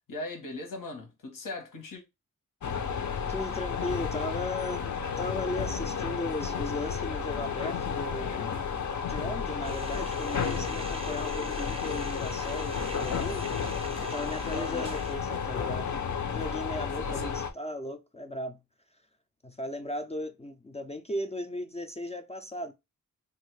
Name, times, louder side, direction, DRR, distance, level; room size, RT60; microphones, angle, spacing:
voice 1, 0.1-2.0 14.5-14.9 17.0-17.3, left 2 dB, 75° left, 1.1 m, -39 dB
sound 1, 2.6-17.5, left 6 dB, 60° left, 0.6 m, -32 dB
voice 2, 3.3-4.9 5.2-8.6 9.1-13.4 14.0-15.9 16.2-18.6 19.4-22.7, left 1 dB, 20° left, 0.3 m, -36 dB
sound 2, 9.6-15.1, right 2 dB, 20° right, 0.6 m, -44 dB
3.0 x 2.4 x 3.1 m
wide cardioid pair, 115°, 33 cm